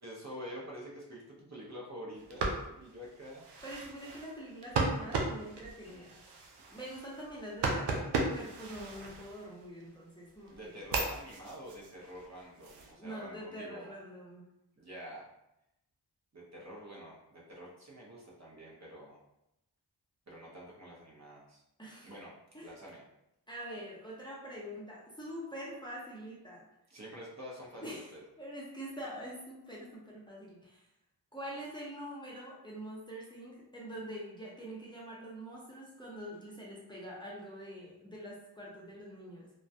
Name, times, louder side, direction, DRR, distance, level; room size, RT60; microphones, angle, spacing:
voice 1, 0.0-3.4 5.8-6.1 10.5-13.9 14.8-15.2 16.3-19.2 20.3-21.6 22.0-22.3 22.6-23.0 26.9-28.2, equal, 40° right, -4 dB, 0.7 m, -47 dB
sound 1, 2.2-9.8 10.3-12.9, right 3 dB, 80° right, 0.5 m, -36 dB
voice 2, 3.6-6.2 6.7-10.8 13.0-14.5 21.8-22.1 22.5-22.7 23.5-26.6 27.8-28.1 28.4-30.8 31.3-39.5, equal, 10° left, -5 dB, 0.7 m, -45 dB
2.2 x 2.1 x 2.6 m, 0.87 s
cardioid pair, 45°, 41 cm